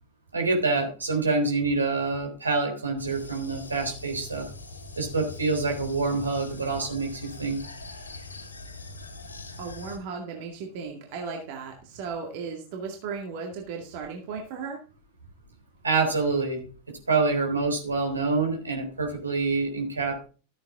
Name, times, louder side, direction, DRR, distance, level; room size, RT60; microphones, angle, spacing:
voice 1, 0.3-4.4 5.0-7.6 15.8-16.6 17.1-20.2, right 3 dB, 75° right, 3 dB, 3.9 m, -26 dB
sound 1, 3.0-10.0, left 3 dB, 75° left, 2.9 m, -42 dB
voice 2, 9.6-14.8, right 5 dB, 50° right, 1 dB, 2.2 m, -36 dB
14.0 x 8.7 x 3.7 m, 0.36 s
figure-of-eight pair, 90°, 0 cm